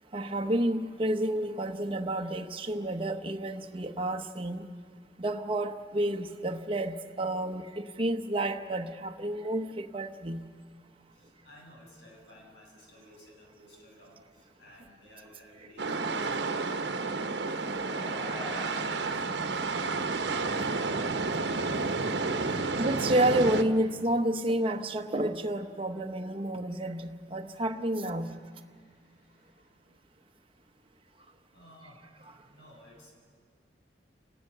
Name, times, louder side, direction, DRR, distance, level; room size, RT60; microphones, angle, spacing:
voice 1, 0.1-4.7 5.2-10.4 20.5-20.8 22.0-28.4, right 1 dB, 30° right, 4 dB, 0.9 m, -30 dB
voice 2, 11.1-17.3 17.6-19.3 21.8-22.7 24.0-24.1 27.1-27.8 28.1-29.9 31.5-33.1, equal, 80° left, -1 dB, 7.3 m, -56 dB
sound 1, 15.8-23.6, right 3 dB, 70° right, 1.1 m, -31 dB
sound 2, 17.2-21.8, left 1 dB, 30° left, 7.7 m, -47 dB
29.5 x 18.5 x 6.8 m, 2.1 s
head